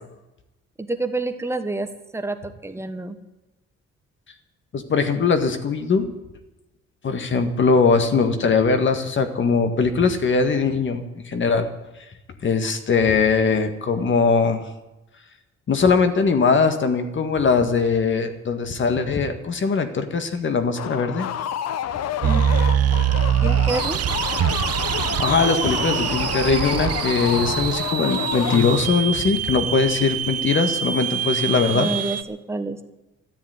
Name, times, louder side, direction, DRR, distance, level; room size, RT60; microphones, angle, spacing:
voice 1, 0.8-3.2 22.2-22.4 23.4-24.0 31.7-32.8, right 3 dB, 10° right, 8 dB, 1.2 m, -28 dB
voice 2, 4.7-6.1 7.0-11.7 12.4-14.6 15.7-21.3 25.2-31.9, left 5 dB, 40° left, 8 dB, 1.8 m, -21 dB
sound 1, 20.8-29.1, left 9 dB, 60° left, 0.8 m, -29 dB
sound 2, 22.2-32.2, right 9 dB, 55° right, 0.9 m, -24 dB
13.5 x 10.0 x 9.4 m, 1.0 s
cardioid pair, 140°, 29 cm